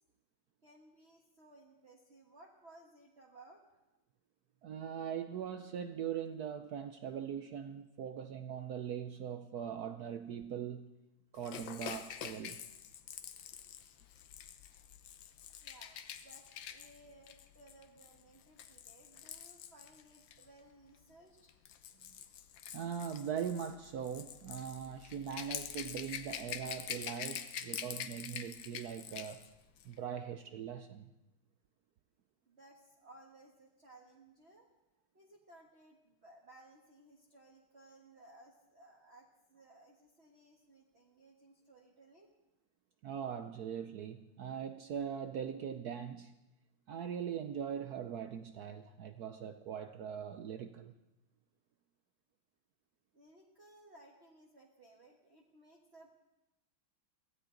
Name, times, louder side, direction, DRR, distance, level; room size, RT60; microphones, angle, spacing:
voice 1, 0.6-3.8 15.6-21.6 32.4-34.7 35.1-42.3 53.1-56.1, right 2 dB, 35° right, 1.5 m, -60 dB
voice 2, 4.6-10.9 11.3-12.6 22.7-29.4 29.8-31.1 43.0-46.4 46.9-50.9, right 8 dB, 75° right, 0.8 m, -41 dB
Rattle / Rattle (instrument), 11.4-20.5 21.4-29.5 29.8-29.9, left 9 dB, 65° left, 1.4 m, -46 dB
23.5 x 16.0 x 3.9 m
omnidirectional pair, 2.4 m